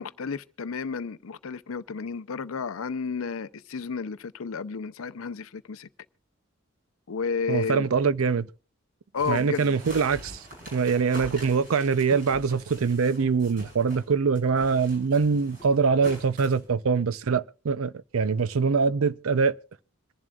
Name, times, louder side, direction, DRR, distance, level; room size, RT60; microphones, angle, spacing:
voice 1, 0.0-5.9 7.1-7.9 9.1-9.8, left 5 dB, 80° left, 0.6 m, -32 dB
voice 2, 7.5-8.5 9.3-10.4 10.7-19.6, right 5 dB, 85° right, 0.5 m, -24 dB
sound 1, 9.2-14.1 14.3-16.6, equal, 45° right, 5.4 m, -45 dB
26.5 x 11.0 x 2.4 m
head